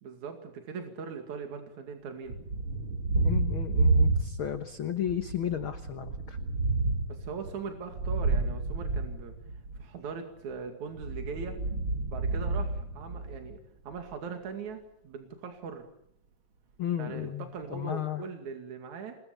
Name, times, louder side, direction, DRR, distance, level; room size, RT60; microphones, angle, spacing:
voice 1, 0.0-2.4 7.1-9.3 9.8-11.6 12.1-13.6 13.8-15.9 17.0-19.2, right 5 dB, 70° right, 5 dB, 3.6 m, -40 dB
Thunder, 2.3-4.7 5.0-9.9 10.9-13.6, right 3 dB, 45° right, 2.6 m, -29 dB
voice 2, 3.1-6.4 16.8-18.3, left 10 dB, 55° left, 8 dB, 1.6 m, -34 dB
28.0 x 21.5 x 7.0 m, 0.72 s
omnidirectional pair, 3.5 m